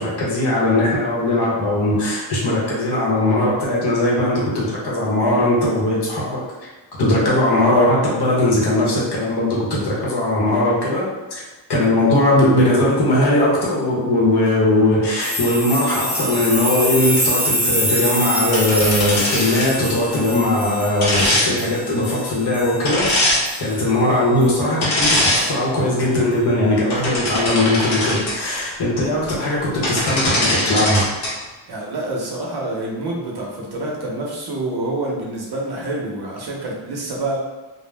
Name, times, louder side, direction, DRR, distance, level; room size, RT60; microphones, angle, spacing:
voice 1, 0.0-6.7 7.0-11.4 11.7-23.3 23.6-31.2, left 1 dB, 60° left, -5 dB, 0.9 m, -19 dB
sound 1, 15.2-23.9 24.4-24.6 25.4-25.5, equal, 5° right, 0.4 m, -25 dB
sound 2, 18.5-19.8 21.0-21.5 22.8-23.4 24.8-25.5 25.9-26.1 26.7-28.3 29.6-29.7 29.8-31.3, left 1 dB, 85° left, 1.1 m, -21 dB
voice 2, 31.7-37.4, right 2 dB, 55° right, -2 dB, 0.7 m, -27 dB
2.4 x 2.0 x 3.2 m, 1.2 s
wide cardioid pair, 175°, 46 cm